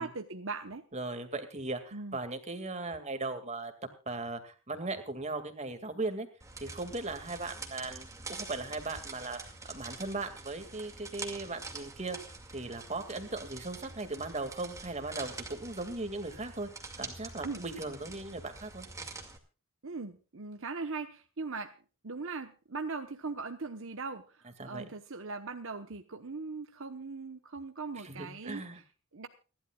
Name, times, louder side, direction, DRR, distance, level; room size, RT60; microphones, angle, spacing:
voice 1, 0.0-0.8 1.9-2.2 17.4-17.6 19.8-21.7 22.0-28.8 29.1-29.3, right 4 dB, 60° right, 6 dB, 1.1 m, -40 dB
voice 2, 0.9-3.7 4.1-6.3 6.6-9.4 9.7-12.2 12.5-16.7 17.0-18.9 24.6-24.8 28.0-28.8, right 2 dB, 30° right, 7 dB, 2.2 m, -38 dB
sound 1, 6.4-19.4, right 3 dB, 15° right, 2.2 m, -45 dB
29.5 x 12.0 x 2.4 m, 0.36 s
head